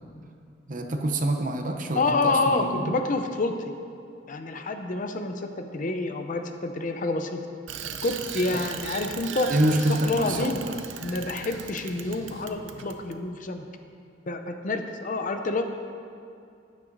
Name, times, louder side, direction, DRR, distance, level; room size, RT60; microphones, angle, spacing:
voice 1, 0.7-2.9 8.5-8.6 9.1-9.2 9.5-10.8, right 1 dB, 45° right, 4 dB, 0.7 m, -26 dB
voice 2, 1.9-3.7 4.3-7.4 8.0-9.5 9.9-10.6 11.0-13.6 14.3-15.7, left 3 dB, 45° left, 6 dB, 0.6 m, -28 dB
Bicycle, 7.7-13.2, right 7 dB, 80° right, 0.5 m, -38 dB
12.5 x 9.7 x 2.7 m, 2.4 s
head